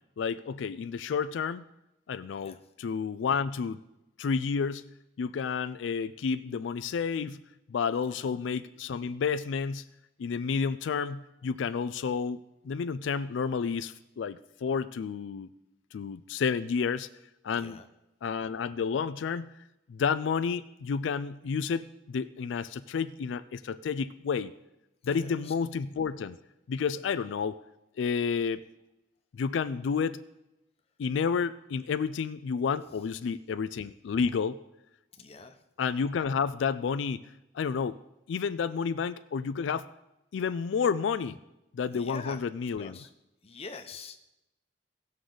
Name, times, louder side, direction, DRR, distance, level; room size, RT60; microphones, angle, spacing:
voice 1, 0.2-1.6 2.1-3.8 4.2-4.9 5.2-7.4 7.7-9.9 10.2-15.5 15.9-17.1 17.4-17.8 18.2-19.6 19.9-24.5 25.0-26.4 26.7-27.6 28.0-28.6 29.3-30.2 31.0-34.6 35.8-37.2 37.5-38.0 38.3-39.9 40.3-41.4 41.7-43.0, left 6 dB, 90° left, 13 dB, 0.4 m, -30 dB
voice 2, 17.5-17.9 25.0-25.5 35.2-35.6 41.9-42.4 42.8-43.1 43.4-44.2, left 4 dB, 35° left, 5 dB, 0.9 m, -45 dB
17.5 x 6.4 x 3.9 m, 0.92 s
head